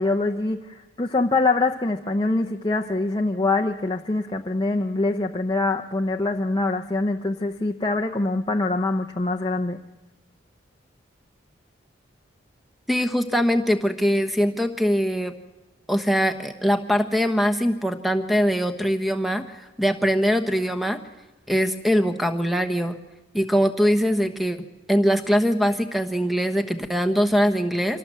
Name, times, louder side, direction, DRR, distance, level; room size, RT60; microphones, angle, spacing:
voice 1, 0.0-9.8, left 2 dB, 25° left, 3 dB, 0.7 m, -24 dB
voice 2, 12.9-15.3 15.9-21.0 21.5-23.0 23.3-24.6 24.9-28.0, equal, ahead, 9 dB, 1.1 m, -22 dB
25.0 x 18.5 x 7.7 m, 1.1 s
head